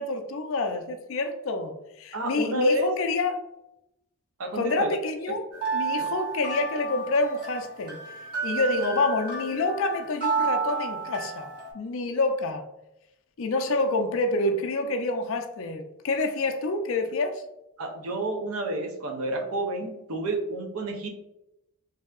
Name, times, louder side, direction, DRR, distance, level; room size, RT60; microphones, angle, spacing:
voice 1, 0.0-1.7 2.0-3.4 4.5-5.4 5.7-8.0 8.4-11.5 11.7-12.6 13.4-17.4, left 2 dB, 60° left, 0.4 m, -27 dB
voice 2, 2.1-2.9 4.4-4.9 17.8-21.1, right 1 dB, 75° right, 0.6 m, -29 dB
sound 1, 5.5-11.7, right 5 dB, 40° right, 1.3 m, -31 dB
3.3 x 2.7 x 2.3 m
head